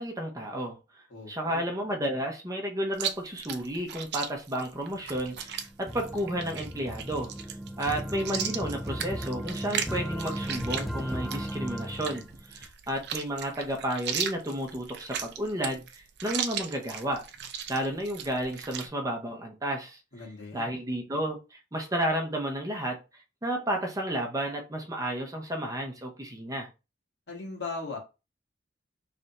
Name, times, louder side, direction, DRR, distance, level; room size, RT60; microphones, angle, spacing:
voice 1, 0.0-7.3 7.8-17.2 17.7-20.0 20.5-23.0 23.4-26.7, right 1 dB, 20° right, 0.8 m, -32 dB
voice 2, 1.1-1.6 20.1-20.7 27.3-28.0, left 3 dB, 65° left, 1.6 m, -38 dB
Chewing mastication, 2.9-18.9, right 8 dB, 65° right, 0.5 m, -37 dB
sound 1, 4.9-12.7, equal, ahead, 0.3 m, -36 dB
3.3 x 2.6 x 4.1 m
head